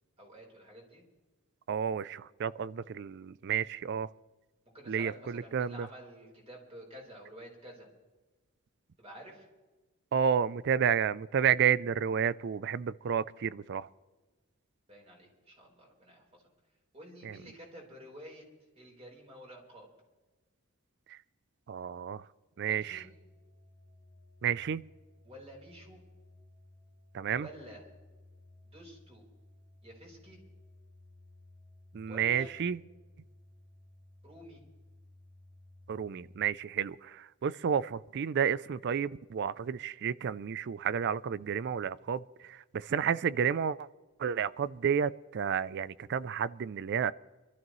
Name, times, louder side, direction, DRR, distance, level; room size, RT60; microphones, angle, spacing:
voice 1, 0.2-1.0 4.7-7.9 9.0-9.5 14.9-16.4 16.9-18.4 18.8-19.9 22.6-23.1 25.2-26.0 27.4-27.8 28.6-29.2 29.8-30.4 32.1-32.5 34.2-34.6, equal, 30° right, -2 dB, 4.1 m, -50 dB
voice 2, 1.7-4.1 4.9-5.9 10.1-13.9 17.2-17.4 21.1-21.2 21.7-22.2 22.6-23.0 24.4-24.8 27.1-27.5 31.9-32.8 35.9-43.9 44.2-47.1, right 7 dB, 50° right, 19 dB, 0.4 m, -31 dB
sound 1, 22.8-36.5, left 1 dB, 80° right, 4.5 m, -58 dB
25.5 x 13.0 x 3.1 m, 1.2 s
head